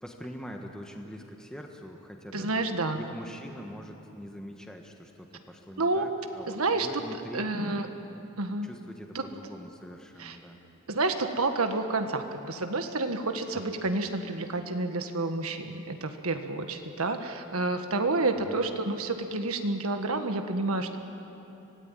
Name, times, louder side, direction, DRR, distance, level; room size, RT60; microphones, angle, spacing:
voice 1, 0.0-7.5 8.6-10.6 18.5-18.7, equal, 5° left, 2 dB, 1.3 m, -43 dB
voice 2, 2.3-3.0 5.8-6.0 6.5-7.0 7.3-7.9 8.4-8.7 9.1-9.2 10.2-10.4 10.9-21.0, right 2 dB, 80° right, 6 dB, 1.6 m, -29 dB
25.5 x 18.0 x 9.0 m, 3.0 s
head